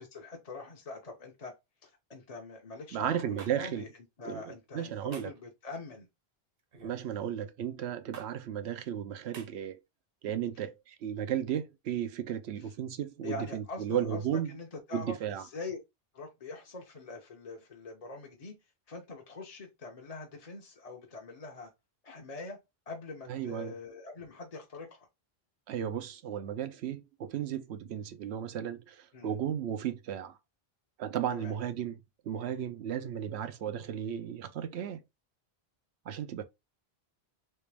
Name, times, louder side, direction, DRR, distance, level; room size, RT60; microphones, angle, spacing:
voice 1, 0.0-1.5 1.8-3.9 4.2-6.1 13.2-15.8 16.1-18.5 18.9-21.7 22.0-22.6 22.9-25.1 29.1-29.3 31.3-31.5, left 3 dB, 40° left, 0.7 m, -44 dB
voice 2, 2.9-3.8 4.2-5.3 6.8-9.8 10.2-14.5 14.9-15.5 23.3-23.7 25.7-30.4 31.0-32.0 32.3-35.0 36.1-36.4, right 9 dB, 85° right, 0.8 m, -34 dB
sound 1, 3.4-3.5 5.1-5.4 6.7-7.0 8.1-8.3 9.3-9.5, right 5 dB, 60° right, 1.0 m, -48 dB
3.4 x 2.9 x 3.3 m
omnidirectional pair, 1.1 m